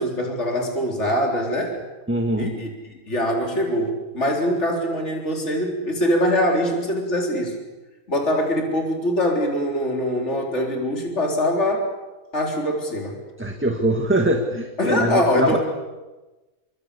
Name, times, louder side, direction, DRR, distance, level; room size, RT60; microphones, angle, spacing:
voice 1, 0.0-1.8 2.4-7.6 8.1-11.9 12.3-13.2 14.8-15.6, equal, 50° left, 1 dB, 4.2 m, -23 dB
voice 2, 2.1-2.5 13.4-15.6, right 1 dB, 10° right, 4 dB, 1.8 m, -22 dB
28.0 x 24.0 x 8.5 m, 1.1 s
omnidirectional pair, 1.6 m